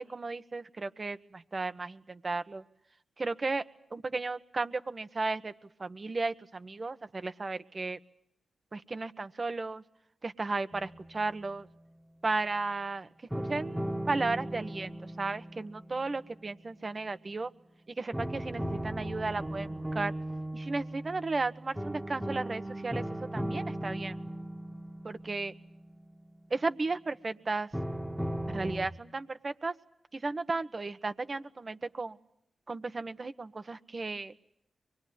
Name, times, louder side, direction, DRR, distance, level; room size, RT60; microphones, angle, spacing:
voice 1, 0.0-2.6 3.2-3.6 3.9-5.5 5.8-8.0 8.7-9.8 10.2-11.7 12.2-13.1 13.5-17.5 18.0-20.1 20.5-23.0 23.3-24.2 25.0-25.5 26.5-27.7 28.5-29.7 30.1-32.2 32.7-34.3, right 3 dB, 40° right, 11 dB, 1.3 m, -34 dB
sound 1, 10.7-11.9 13.3-17.3 18.1-26.9 27.7-28.9, right 1 dB, 10° right, 1.8 m, -38 dB
24.0 x 21.0 x 9.6 m, 0.75 s
cardioid pair, 50°, 0 cm